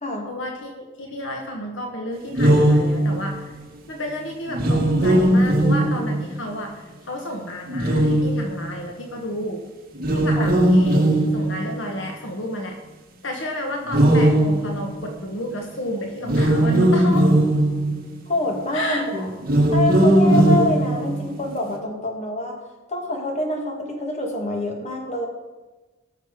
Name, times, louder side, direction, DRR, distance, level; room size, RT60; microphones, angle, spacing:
voice 1, 0.3-3.5 3.9-9.6 10.1-11.1 11.3-12.8 13.2-17.3 18.7-19.0, equal, 70° left, 1 dB, 1.5 m, -31 dB
sound 1, 2.3-3.4 4.5-6.5 7.7-8.8 9.9-12.0 13.9-15.2 16.2-18.2 19.4-21.4, right 1 dB, 50° right, 2.1 m, -18 dB
voice 2, 18.3-19.3 19.7-22.6 22.9-25.3, left 1 dB, 35° left, 1 dB, 2.5 m, -26 dB
19.5 x 6.6 x 5.1 m, 1.2 s
head